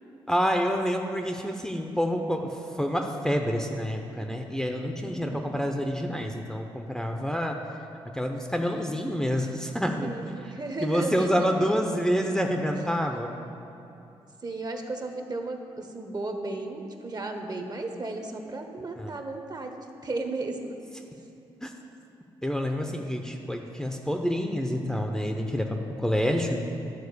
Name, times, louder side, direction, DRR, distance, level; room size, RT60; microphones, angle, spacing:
voice 1, 0.3-2.5 2.8-7.6 8.1-10.4 10.8-13.3 19.0-19.1 21.6-21.7 22.4-26.6, equal, 5° left, 2 dB, 0.7 m, -28 dB
voice 2, 5.0-5.6 10.0-11.9 14.4-20.7, right 2 dB, 35° right, 5 dB, 1.0 m, -35 dB
10.5 x 3.9 x 6.8 m, 2.7 s
supercardioid pair, 55°, 11 cm